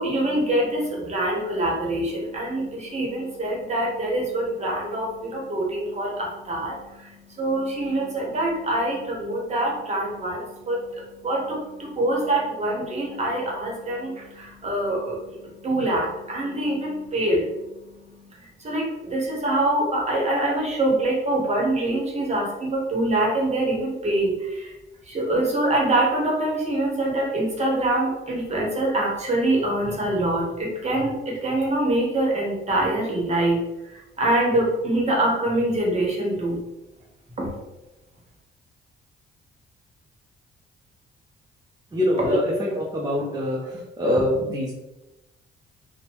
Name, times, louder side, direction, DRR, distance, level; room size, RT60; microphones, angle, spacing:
voice 1, 0.0-18.3 18.6-24.7 25.1-33.6 33.9-36.6 37.4-37.5 42.2-42.4, right 1 dB, 35° right, -2 dB, 1.0 m, -25 dB
voice 2, 41.9-44.7, left 1 dB, 20° right, -5 dB, 0.6 m, -24 dB
2.8 x 2.1 x 2.9 m, 0.99 s
cardioid pair, 90°, 20 cm